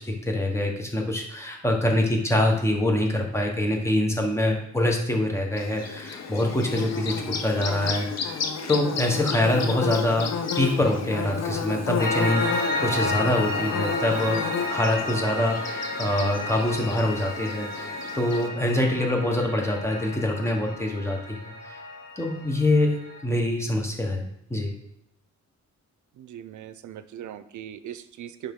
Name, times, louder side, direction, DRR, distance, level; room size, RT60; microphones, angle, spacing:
voice 1, 0.0-8.4 8.7-10.3 10.6-21.4 21.6-21.8 22.2-24.2 24.5-24.7, left 1 dB, 10° left, 1 dB, 1.1 m, -25 dB
Bird / Buzz, 5.6-18.5, left 6 dB, 60° left, 0.8 m, -32 dB
Piano, 12.0-23.2, left 2 dB, 30° left, 2.4 m, -32 dB
voice 2, 26.2-28.5, right 10 dB, 80° right, 12 dB, 0.5 m, -40 dB
9.9 x 3.6 x 3.7 m, 0.82 s
wide cardioid pair, 130°, 30 cm